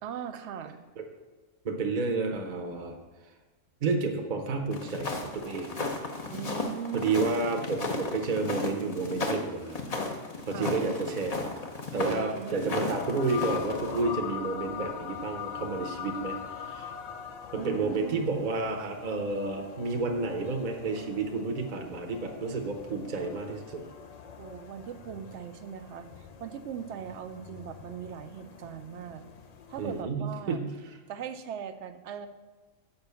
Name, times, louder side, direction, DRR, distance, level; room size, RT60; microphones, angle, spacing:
voice 1, 0.0-0.8 6.3-7.1 10.5-10.8 12.0-12.9 17.6-18.5 24.4-29.3 29.7-30.6 31.1-32.3, right 8 dB, 65° right, 10 dB, 0.8 m, -40 dB
voice 2, 1.6-3.0 3.8-5.8 6.9-9.8 10.5-11.5 11.9-16.9 17.5-23.8 29.8-30.9, right 3 dB, 40° right, 3 dB, 0.9 m, -31 dB
sound 1, 4.7-14.0, left 3 dB, 35° left, 0.8 m, -34 dB
sound 2, 12.9-30.0, left 8 dB, 55° left, 0.4 m, -42 dB
6.9 x 5.3 x 6.8 m, 1.3 s
omnidirectional pair, 1.4 m